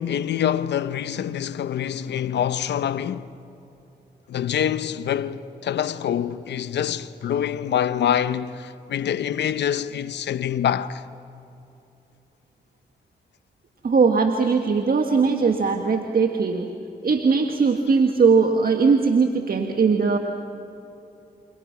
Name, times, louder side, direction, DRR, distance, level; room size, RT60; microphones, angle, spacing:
voice 1, 0.0-3.3 4.3-11.0, left 9 dB, 85° left, 0.9 m, -25 dB
voice 2, 13.8-16.7 17.0-20.2, right 5 dB, 55° right, 1.8 m, -20 dB
28.5 x 28.0 x 6.0 m
cardioid pair, 50°, 18 cm